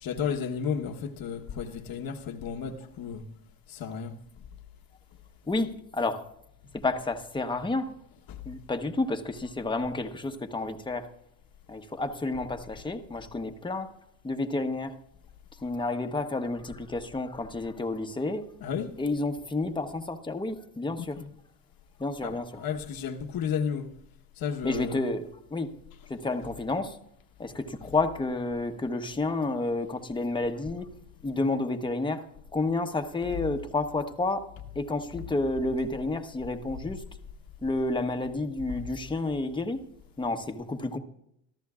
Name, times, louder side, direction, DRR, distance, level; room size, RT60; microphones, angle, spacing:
voice 1, 0.0-3.2 3.7-4.1 8.3-8.4 18.6-18.9 21.0-21.3 22.2-23.9 24.4-25.1 27.4-27.5 35.1-35.3, left 7 dB, 50° left, 1.2 m, -33 dB
voice 2, 5.5-6.2 6.7-7.9 8.4-11.1 11.7-13.9 14.2-14.9 15.6-18.5 19.0-21.2 22.0-22.6 24.6-25.7 26.1-27.0 27.4-30.9 31.2-32.2 32.5-34.4 34.7-37.0 37.6-39.8 40.2-41.0, left 2 dB, 10° left, 1.1 m, -30 dB
24.0 x 14.0 x 2.4 m
supercardioid pair, 95°, 45 cm